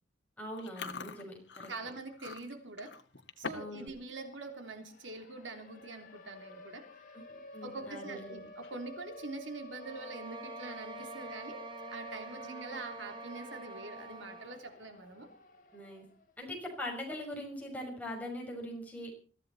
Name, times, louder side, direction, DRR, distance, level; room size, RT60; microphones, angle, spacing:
voice 1, 0.4-1.7 3.5-3.9 7.3-8.4 12.4-12.8 15.7-16.0 16.4-19.1, left 1 dB, 10° left, -1 dB, 6.1 m, -42 dB
Chewing mastication, 0.6-3.8 4.1-4.4 4.9-5.1 5.9-6.0 6.2-6.5 6.9-7.0 8.5-9.1, left 4 dB, 70° left, 1.8 m, -45 dB
voice 2, 1.7-2.9 3.4-6.8 7.6-11.6 11.9-15.3, right 3 dB, 85° right, 5 dB, 3.3 m, -44 dB
Siren, 3.9-4.0 4.3-16.3, left 1 dB, 50° left, 3.5 m, -51 dB
sound 1, 9.8-14.6, right 2 dB, 25° right, 1.3 m, -47 dB
22.5 x 15.5 x 4.2 m, 0.39 s
head